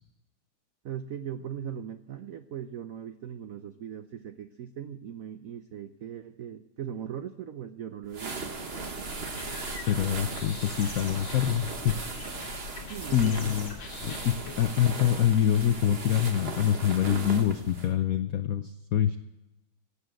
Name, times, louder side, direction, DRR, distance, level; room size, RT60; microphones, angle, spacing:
voice 1, 0.8-8.4 12.9-13.4, right 9 dB, 85° right, 10 dB, 0.7 m, -39 dB
sound 1, 8.1-17.9, right 3 dB, 35° right, 1.2 m, -38 dB
sound 2, 9.1-14.7, left 4 dB, 65° left, 2.3 m, -43 dB
voice 2, 9.9-12.0 13.1-13.7 14.0-19.2, left 10 dB, 85° left, 10 dB, 0.7 m, -25 dB
16.0 x 8.3 x 7.8 m, 0.96 s
omnidirectional pair, 2.3 m